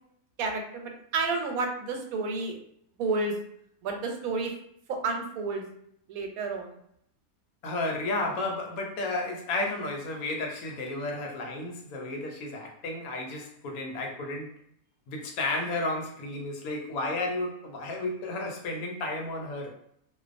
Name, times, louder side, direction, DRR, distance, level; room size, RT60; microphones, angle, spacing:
voice 1, 0.4-2.6 3.0-3.3 3.8-4.5 4.9-5.6 6.1-6.8, right 3 dB, 85° right, 3 dB, 1.0 m, -30 dB
voice 2, 7.6-14.6 15.1-19.7, left 2 dB, 85° left, 1 dB, 1.1 m, -32 dB
2.5 x 2.2 x 2.4 m, 0.70 s
omnidirectional pair, 1.5 m